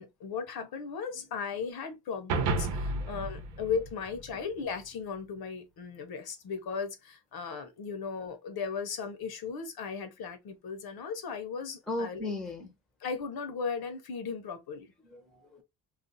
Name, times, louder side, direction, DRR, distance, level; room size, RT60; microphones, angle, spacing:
voice 1, 0.0-12.3 13.0-14.9, left 5 dB, 55° left, 0.8 m, -36 dB
sound 1, 2.3-4.8, right 3 dB, 65° right, 0.8 m, -32 dB
voice 2, 11.9-12.7 15.0-15.6, left 2 dB, ahead, 0.7 m, -37 dB
2.5 x 2.2 x 3.9 m
cardioid pair, 140°, 44 cm